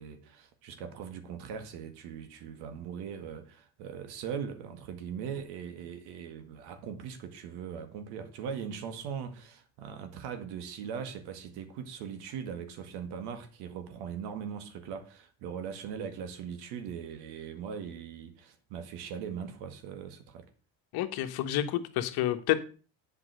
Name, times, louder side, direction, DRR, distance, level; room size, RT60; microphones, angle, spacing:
voice 1, 0.0-20.5, right 7 dB, 75° right, 1.9 m, -40 dB
voice 2, 20.9-22.6, left 13 dB, 70° left, 1.4 m, -29 dB
8.4 x 6.0 x 6.4 m
supercardioid pair, 95°, 39 cm